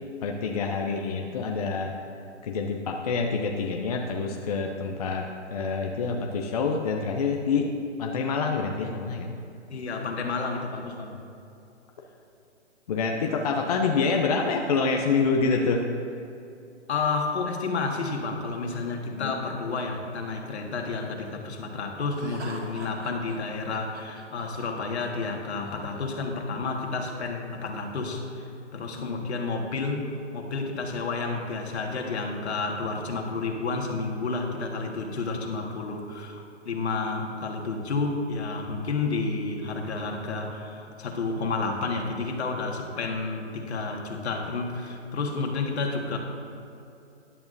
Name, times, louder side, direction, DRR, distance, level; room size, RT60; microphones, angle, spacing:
voice 1, 0.2-1.9 2.4-5.3 5.5-7.7 8.0-9.3 12.9-15.9 19.1-19.3 29.0-29.1, left 4 dB, 35° left, 2 dB, 0.5 m, -27 dB
voice 2, 9.7-11.1 16.9-46.2, left 3 dB, 65° left, 1 dB, 1.8 m, -30 dB
Laughter, 22.1-26.1, right 2 dB, 70° right, 1.7 m, -44 dB
13.5 x 10.5 x 2.6 m, 2.7 s
hypercardioid pair, 150°, 36 cm